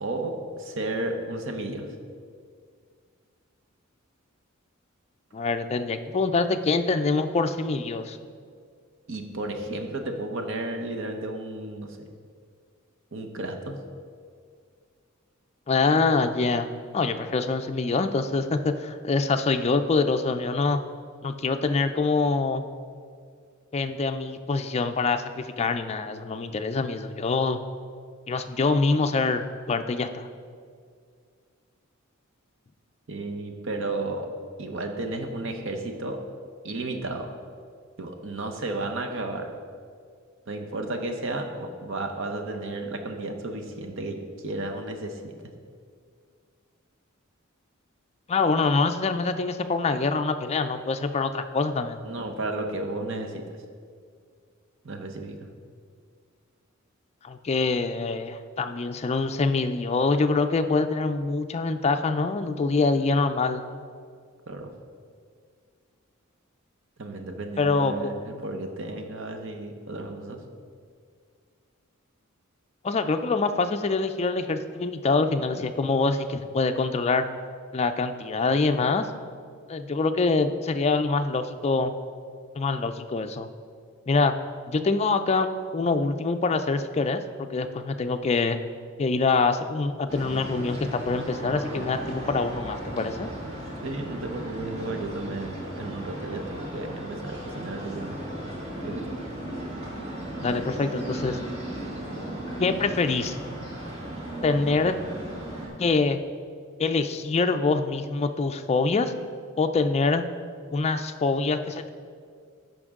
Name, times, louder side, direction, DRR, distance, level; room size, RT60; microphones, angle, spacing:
voice 1, 0.0-1.9 9.1-12.1 13.1-13.8 33.1-34.3 34.6-36.2 36.6-37.3 38.0-39.5 40.5-45.3 52.0-53.4 54.8-55.4 64.5-64.7 67.0-70.4 93.8-98.2 98.8-99.1, right 2 dB, 65° right, 4 dB, 0.9 m, -33 dB
voice 2, 5.3-8.2 15.7-16.7 16.9-20.8 21.2-22.6 23.7-27.6 28.3-30.3 48.3-52.1 57.2-63.7 67.6-68.1 72.8-77.3 77.7-79.1 79.7-81.9 82.5-83.5 84.1-84.3 84.7-88.6 89.0-93.3 100.4-101.4 102.6-103.4 104.4-105.0 105.8-106.2 106.8-109.1 109.6-110.2 110.7-111.9, left 3 dB, 30° left, 8 dB, 0.4 m, -25 dB
sound 1, 90.1-105.7, right 1 dB, 30° right, 1.8 m, -36 dB
13.5 x 5.3 x 3.7 m, 2.1 s
head